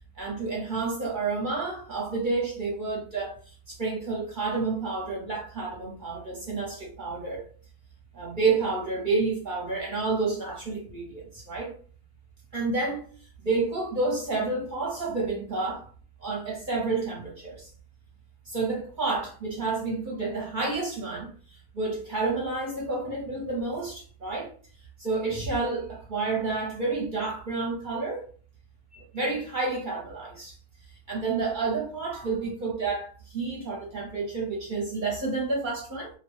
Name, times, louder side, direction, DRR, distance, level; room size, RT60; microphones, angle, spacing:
voice 1, 0.2-7.4 8.1-11.7 12.5-13.1 13.4-15.9 16.2-17.7 18.5-21.3 21.7-24.5 25.0-28.2 28.9-30.5 31.1-36.1, right 3 dB, 40° right, -3 dB, 0.8 m, -30 dB
2.8 x 2.3 x 3.0 m, 0.42 s
omnidirectional pair, 1.6 m